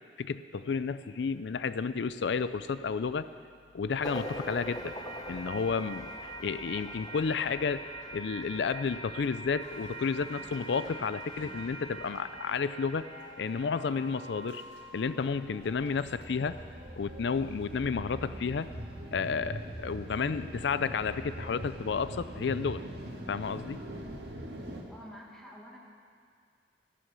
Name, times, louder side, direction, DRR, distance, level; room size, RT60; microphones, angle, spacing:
voice 1, 0.2-3.3 3.7-5.0 5.3-13.1 13.4-14.6 14.9-16.6 17.0-18.7 19.1-22.8 23.3-23.8, left 5 dB, 80° left, 13 dB, 0.4 m, -31 dB
sound 1, 4.0-15.2, right 1 dB, 20° left, 1.0 m, -43 dB
sound 2, 9.6-24.8, equal, 70° right, 1.8 m, -44 dB
voice 2, 24.9-25.8, equal, ahead, -3 dB, 1.9 m, -48 dB
13.5 x 11.0 x 6.9 m, 2.2 s
head